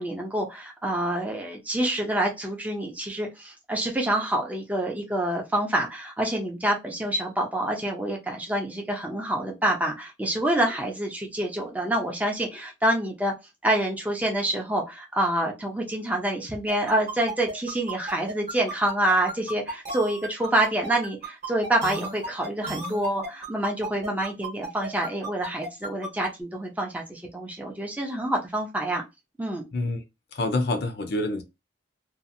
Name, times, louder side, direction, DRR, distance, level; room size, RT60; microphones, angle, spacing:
voice 1, 0.0-13.3 13.6-29.0 29.4-29.6, right 1 dB, 10° right, 0.5 m, -27 dB
sound 1, 16.7-26.3, right 2 dB, 40° right, 0.9 m, -34 dB
voice 2, 29.7-30.0 30.3-31.4, left 2 dB, 55° left, 0.5 m, -27 dB
2.7 x 2.4 x 2.5 m
head